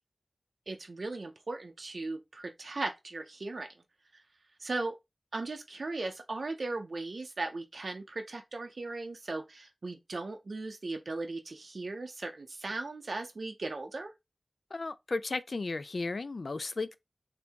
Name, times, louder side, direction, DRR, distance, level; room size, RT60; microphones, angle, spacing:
voice 1, 0.7-3.7 4.1-4.2 4.6-5.0 5.3-14.1, right 3 dB, 75° right, 0.5 m, -37 dB
voice 2, 14.7-16.9, left 3 dB, 70° left, 0.4 m, -34 dB
3.4 x 2.7 x 4.4 m
wide cardioid pair, 75°, 0 cm